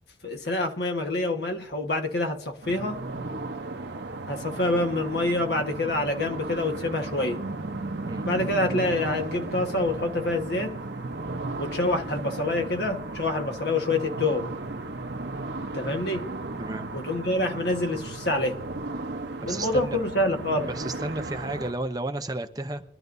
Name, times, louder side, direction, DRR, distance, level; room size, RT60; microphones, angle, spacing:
voice 1, 0.2-3.0 4.3-7.4 8.2-10.8 11.6-14.5 15.7-16.3 16.9-18.6 19.4-20.7, left 2 dB, 60° left, 1.5 m, -27 dB
sound 1, 2.6-21.7, right 2 dB, 65° right, 0.9 m, -35 dB
voice 2, 16.6-16.9 19.4-20.0 20.7-22.8, right 2 dB, 20° right, 0.8 m, -32 dB
23.0 x 12.0 x 2.7 m
head